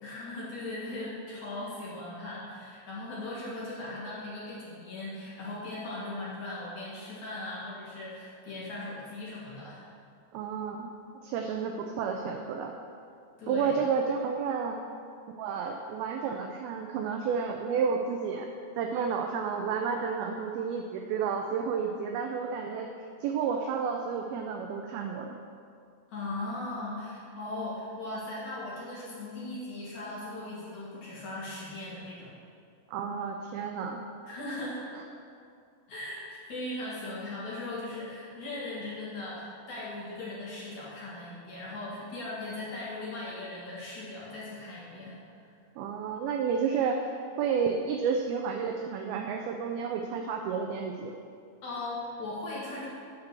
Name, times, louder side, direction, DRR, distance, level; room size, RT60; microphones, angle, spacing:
voice 1, 0.0-9.9 13.4-13.8 26.1-32.3 34.3-34.9 35.9-45.2 51.6-52.9, left 2 dB, 50° left, -7 dB, 2.6 m, -38 dB
voice 2, 10.3-10.9 11.2-12.7 13.5-14.8 15.4-18.5 18.8-22.9 23.2-25.4 32.9-34.0 34.9-35.0 45.8-51.1, right 6 dB, 85° right, 3 dB, 2.1 m, -31 dB
9.6 x 5.9 x 6.6 m, 2.4 s
omnidirectional pair, 5.0 m